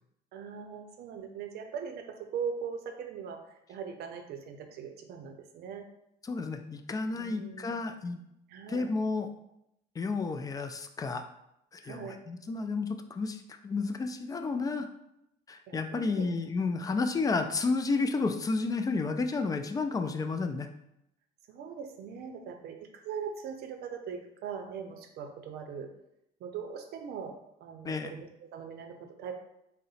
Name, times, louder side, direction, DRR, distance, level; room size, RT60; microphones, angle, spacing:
voice 1, 0.3-3.4 3.7-5.9 7.1-7.7 8.5-8.9 11.8-12.2 15.7-16.3 21.5-25.9 26.4-29.3, right 6 dB, 70° right, 6 dB, 0.5 m, -40 dB
voice 2, 6.2-8.2 8.7-9.3 10.0-11.3 11.7-14.9 15.5-20.7 27.8-28.2, left 3 dB, 20° left, 7 dB, 0.3 m, -31 dB
3.7 x 2.1 x 4.1 m, 0.82 s
cardioid pair, 110°, 17 cm